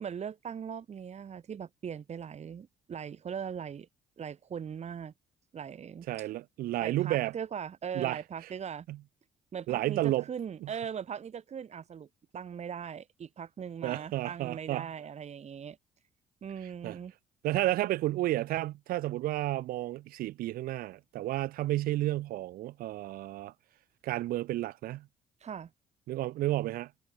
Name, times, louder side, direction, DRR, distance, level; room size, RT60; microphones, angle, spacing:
voice 1, 0.0-3.9 4.2-5.1 5.5-6.3 6.8-8.9 9.5-12.1 12.3-15.8 16.4-17.1 25.4-25.7, right 7 dB, 45° right, 1.4 m, -40 dB
voice 2, 6.1-7.3 7.9-8.2 8.9-9.0 9.7-10.2 10.6-10.7 13.8-14.9 16.8-17.0 17.4-23.5 24.0-25.1 26.1-26.9, right 15 dB, 75° right, 1.7 m, -31 dB
hypercardioid pair, 55°, 15 cm